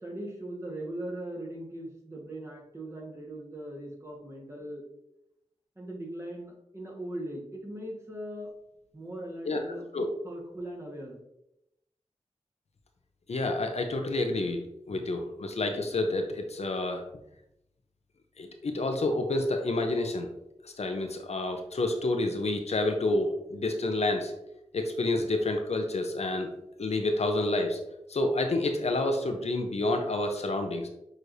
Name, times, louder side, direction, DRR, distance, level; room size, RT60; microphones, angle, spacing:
voice 1, 0.0-4.8 5.8-8.5 8.9-9.8 10.2-11.2, right 1 dB, 25° right, -1 dB, 1.3 m, -39 dB
voice 2, 13.3-17.0 18.4-20.3 20.6-24.3 24.7-26.5 26.8-27.8 28.1-30.9, left 2 dB, 65° left, 5 dB, 0.6 m, -29 dB
6.4 x 3.1 x 2.6 m, 0.83 s
cardioid pair, 50°, 12 cm